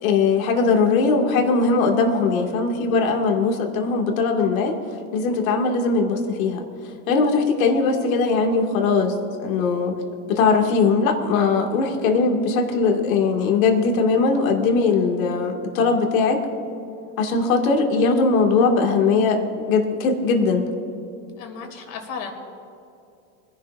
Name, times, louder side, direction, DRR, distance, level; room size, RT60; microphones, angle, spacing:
voice 1, 0.0-4.8 5.1-6.6 7.1-9.9 10.3-16.4 17.2-19.4 19.7-20.7, left 4 dB, 85° left, 2 dB, 2.3 m, -20 dB
voice 2, 21.4-22.3, left 6 dB, 55° left, 2 dB, 2.8 m, -35 dB
24.5 x 11.0 x 2.6 m, 2.7 s
supercardioid pair, 120°, 40 cm